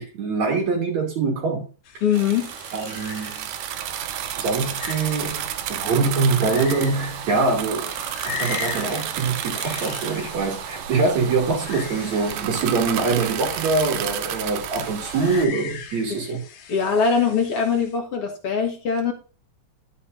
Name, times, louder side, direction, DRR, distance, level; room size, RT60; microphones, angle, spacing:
voice 1, 0.0-1.7 2.7-3.5 4.4-8.0 8.2-16.4, right 4 dB, 55° right, 3.5 m, -24 dB
sound 1, 1.9-18.0, left 7 dB, 85° left, 3.2 m, -39 dB
voice 2, 2.0-2.5 16.1-16.4 16.7-19.1, left 6 dB, 50° left, 2.2 m, -22 dB
sound 2, 2.1-15.5, right 10 dB, 75° right, 2.2 m, -31 dB
11.5 x 7.4 x 2.6 m
omnidirectional pair, 4.0 m